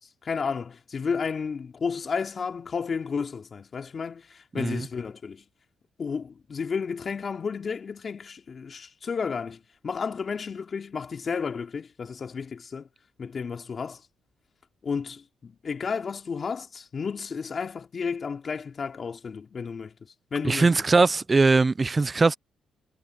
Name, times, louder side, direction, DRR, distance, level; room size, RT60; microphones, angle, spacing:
voice 1, 0.2-5.4 6.0-12.9 13.2-14.0 14.8-19.9 20.3-20.7, left 5 dB, 45° left, 2.9 m, -32 dB
voice 2, 4.6-4.9 20.4-22.3, right 3 dB, 25° right, 0.4 m, -21 dB
cardioid pair, 90°, 0 cm